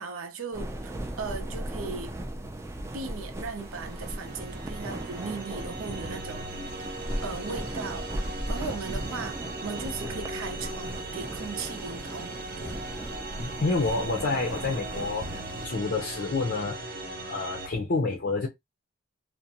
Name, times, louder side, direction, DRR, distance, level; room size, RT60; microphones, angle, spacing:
voice 1, 0.0-2.2 2.9-6.5 7.2-8.1 8.5-12.8, right 4 dB, 85° right, 0.6 m, -37 dB
sound 1, 0.5-15.7, right 1 dB, 15° right, 0.3 m, -37 dB
sound 2, 3.3-17.7, right 2 dB, 45° right, 0.7 m, -39 dB
voice 2, 13.4-18.5, left 3 dB, 50° left, 0.5 m, -29 dB
2.5 x 2.1 x 2.8 m
head